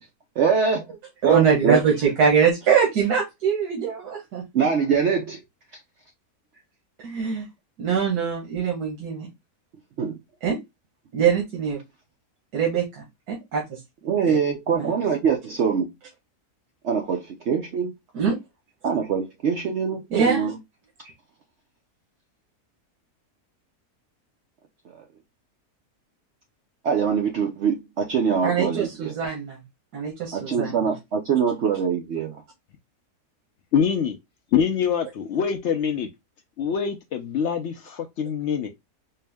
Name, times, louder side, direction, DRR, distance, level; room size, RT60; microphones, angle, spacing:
voice 1, 0.4-1.0 1.2-1.8 4.5-5.4 10.0-10.2 14.1-15.9 16.8-17.9 18.8-20.5 26.8-29.1 30.3-32.4, right 6 dB, 65° right, 0.7 m, -23 dB
voice 2, 1.2-4.4 7.0-7.5 7.8-9.3 10.4-10.6 11.1-11.8 12.5-13.8 14.2-14.4 14.7-14.9 18.1-18.4 20.1-20.5 28.4-29.6 29.9-30.9, right 6 dB, 85° right, 1.6 m, -23 dB
voice 3, 33.7-34.2 34.5-36.1 36.6-38.7, left 7 dB, 70° left, 0.7 m, -24 dB
4.4 x 2.1 x 3.3 m
omnidirectional pair, 1.6 m